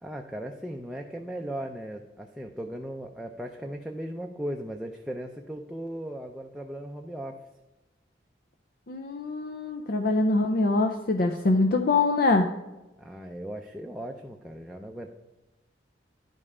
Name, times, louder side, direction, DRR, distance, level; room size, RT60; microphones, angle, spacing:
voice 1, 0.0-7.4 13.0-15.1, right 1 dB, 5° right, 1 dB, 0.5 m, -37 dB
voice 2, 8.9-12.5, left 3 dB, 55° left, 4 dB, 0.5 m, -24 dB
10.5 x 5.4 x 4.9 m, 1.0 s
head